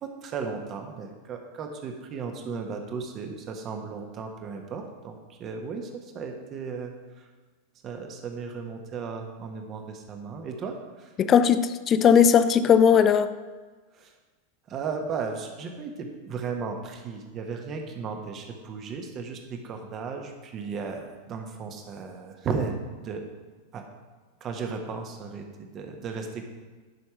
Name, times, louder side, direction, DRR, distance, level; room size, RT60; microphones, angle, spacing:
voice 1, 0.0-7.3 7.8-11.1 13.9-14.1 14.7-23.2 23.7-23.8 24.4-26.5, right 5 dB, 30° right, 4 dB, 1.3 m, -35 dB
voice 2, 11.2-13.3, left 7 dB, 25° left, 12 dB, 0.5 m, -18 dB
11.0 x 6.0 x 4.8 m, 1.4 s
figure-of-eight pair, 90°, 0 cm